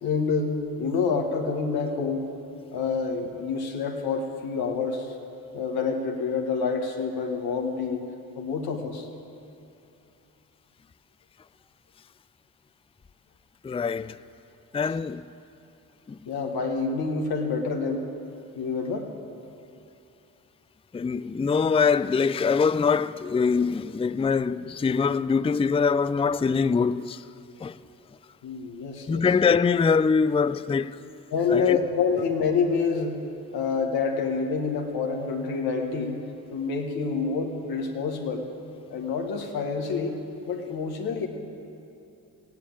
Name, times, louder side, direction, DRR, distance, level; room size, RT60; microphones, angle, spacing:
voice 1, 0.0-2.3 2.7-5.2 5.5-8.1 8.4-9.1 16.2-18.1 18.5-19.1 28.4-29.2 31.3-33.2 33.5-36.2 36.5-38.4 38.9-40.1 40.5-41.3, left 5 dB, 90° left, 1.5 m, -27 dB
voice 2, 13.6-14.2 14.7-15.3 16.1-16.2 20.9-27.2 27.6-27.8 29.1-31.0 31.5-31.8, left 5 dB, 15° left, 0.4 m, -23 dB
15.5 x 10.5 x 8.7 m
supercardioid pair, 45°, 37 cm